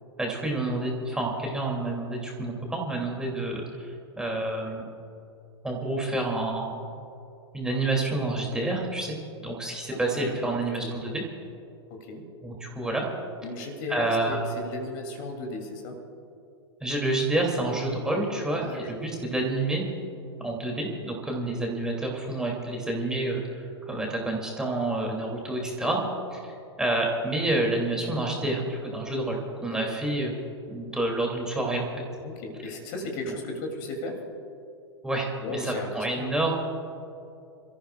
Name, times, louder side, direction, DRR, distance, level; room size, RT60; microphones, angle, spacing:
voice 1, 0.2-4.9 5.6-6.8 7.5-11.2 12.4-13.1 13.9-14.5 16.8-19.8 20.4-26.0 26.3-26.4 26.8-30.3 30.7-32.0 33.3-33.4 35.0-36.5, right 2 dB, 5° right, -1 dB, 2.9 m, -28 dB
voice 2, 9.9-10.9 11.9-12.2 13.4-16.0 18.6-18.9 25.8-26.1 29.9-30.0 32.2-34.2 35.4-36.4, left 2 dB, 45° left, 2 dB, 3.0 m, -36 dB
28.5 x 14.5 x 2.5 m, 2.7 s
figure-of-eight pair, 105°, 14 cm